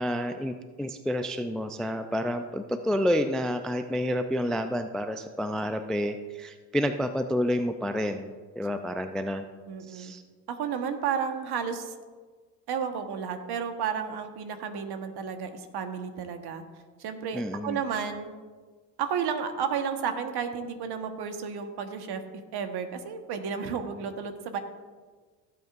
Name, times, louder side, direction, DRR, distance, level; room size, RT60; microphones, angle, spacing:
voice 1, 0.0-9.5 9.9-10.2 17.3-17.8, equal, ahead, 9 dB, 0.3 m, -29 dB
voice 2, 9.7-10.1 10.5-11.9 12.7-16.6 17.0-18.3 19.0-22.2 22.5-24.6, right 7 dB, 50° right, 7 dB, 1.4 m, -32 dB
15.5 x 8.1 x 2.6 m, 1.4 s
hypercardioid pair, 65°, 49 cm